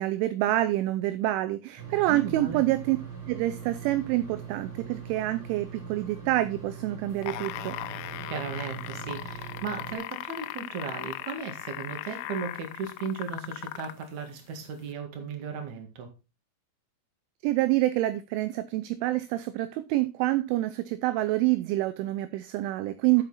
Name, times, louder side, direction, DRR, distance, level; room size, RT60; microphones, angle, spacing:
voice 1, 0.0-3.0 3.3-7.8 17.4-23.2, right 16 dB, 85° right, 2.8 m, -27 dB
sound 1, 1.8-10.0, right 7 dB, 30° right, 3.1 m, -41 dB
voice 2, 2.1-2.6 8.3-16.1, right 5 dB, 50° right, 2.4 m, -36 dB
sound 2, 7.1-14.1 14.9-15.0, left 15 dB, 85° left, 3.4 m, -38 dB
11.5 x 5.7 x 4.0 m
omnidirectional pair, 5.9 m